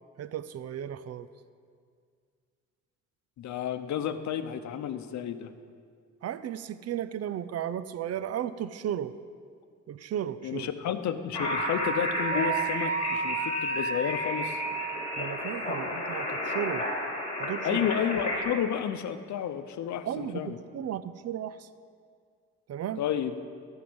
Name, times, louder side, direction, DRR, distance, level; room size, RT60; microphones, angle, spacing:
voice 1, 0.2-1.3 6.2-9.1 9.9-10.7 15.2-16.9 17.4-17.9 20.1-21.7 22.7-23.0, right 10 dB, 55° right, 14 dB, 0.5 m, -34 dB
voice 2, 3.4-5.5 10.4-14.6 17.6-20.6 23.0-23.4, left 9 dB, 70° left, 10 dB, 0.8 m, -31 dB
sound 1, 11.3-18.4, left 1 dB, 20° left, 3.2 m, -32 dB
Wind instrument woodwind instrument, 11.4-15.3, right 5 dB, 25° right, 1.2 m, -33 dB
15.0 x 5.6 x 7.8 m, 2.1 s
cardioid pair, 90°, 30 cm